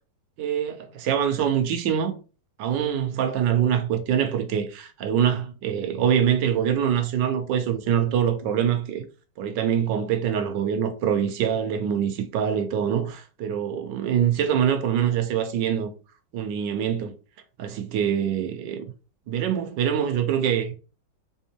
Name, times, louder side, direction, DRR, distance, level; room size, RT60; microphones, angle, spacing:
voice 1, 0.4-2.1 2.6-9.0 9.4-15.9 16.3-17.1 17.6-18.8 19.3-20.7, right 9 dB, 75° right, 1.2 m, -24 dB
3.8 x 3.5 x 2.7 m
omnidirectional pair, 2.1 m